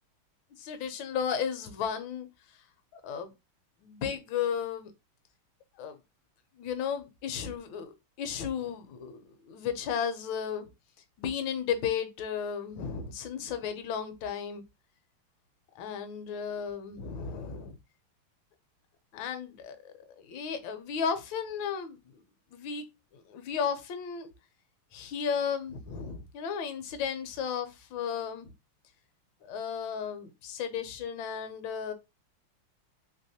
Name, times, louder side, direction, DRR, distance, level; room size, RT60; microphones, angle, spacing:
voice 1, 0.6-2.3 2.9-3.3 3.8-4.9 5.8-6.0 6.6-10.7 11.2-14.6 15.7-17.8 19.1-22.0 22.5-22.8 23.1-24.3 24.9-28.5 29.4-31.9, left 7 dB, 70° left, 1.3 m, -34 dB
3.5 x 3.0 x 2.7 m
omnidirectional pair, 2.4 m